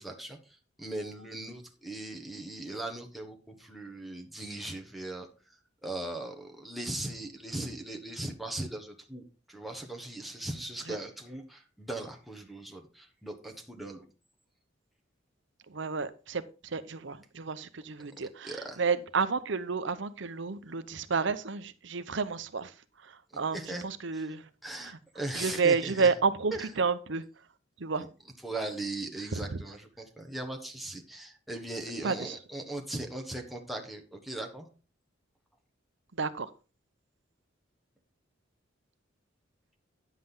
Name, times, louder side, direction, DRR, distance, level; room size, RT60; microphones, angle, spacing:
voice 1, 0.0-5.6 5.8-14.0 18.4-18.8 23.5-23.8 24.1-24.4 24.6-26.1 26.5-26.7 28.0-28.1 28.4-34.7, right 2 dB, ahead, 2 dB, 1.2 m, -39 dB
voice 2, 15.7-16.4 16.7-18.5 18.8-22.7 23.4-23.6 23.8-24.4 25.4-27.2 27.8-28.0 29.3-29.4 32.0-32.1 36.2-36.5, right 5 dB, 65° right, 13 dB, 0.8 m, -30 dB
10.0 x 7.6 x 3.8 m, 0.33 s
head